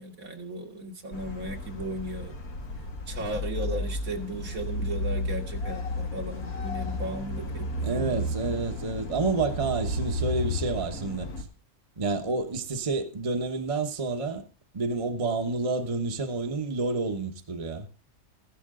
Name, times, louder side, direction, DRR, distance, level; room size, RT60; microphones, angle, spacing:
voice 1, 0.0-2.3 3.1-8.2, right 1 dB, 70° right, 2.2 m, -36 dB
sound 1, 1.1-11.4, left 1 dB, 85° left, 2.4 m, -33 dB
voice 2, 7.8-11.4 12.0-14.4 14.7-17.9, right 3 dB, 25° right, 1.1 m, -29 dB
15.0 x 11.5 x 3.8 m
omnidirectional pair, 1.5 m